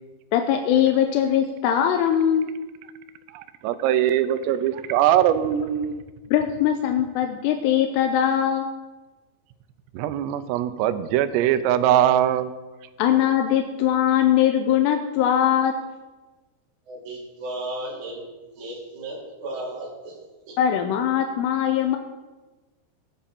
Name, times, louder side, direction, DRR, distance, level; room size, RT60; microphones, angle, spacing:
voice 1, 0.3-2.5 6.3-8.7 13.0-15.7 20.6-22.0, left 10 dB, 85° left, 4 dB, 2.7 m, -21 dB
voice 2, 3.3-6.0 9.9-12.5, right 11 dB, 80° right, 11 dB, 2.7 m, -21 dB
voice 3, 16.9-18.2 18.6-20.1 20.5-20.6, right 1 dB, 45° right, -4 dB, 4.1 m, -34 dB
18.0 x 7.0 x 4.3 m, 1.2 s
omnidirectional pair, 5.2 m